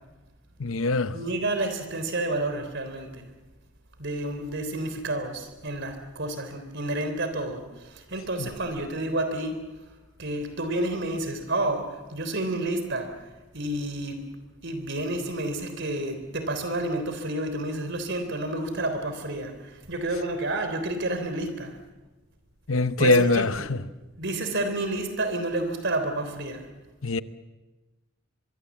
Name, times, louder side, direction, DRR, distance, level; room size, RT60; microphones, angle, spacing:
voice 1, 0.6-1.1 8.4-8.5 22.7-23.5 27.0-27.2, left 3 dB, 80° left, 0.9 m, -22 dB
voice 2, 1.1-3.3 4.0-9.6 10.2-13.2 13.5-14.2 14.6-21.8 23.0-23.7 24.2-26.7, right 1 dB, 60° right, 3.6 m, -30 dB
23.5 x 23.5 x 7.3 m
head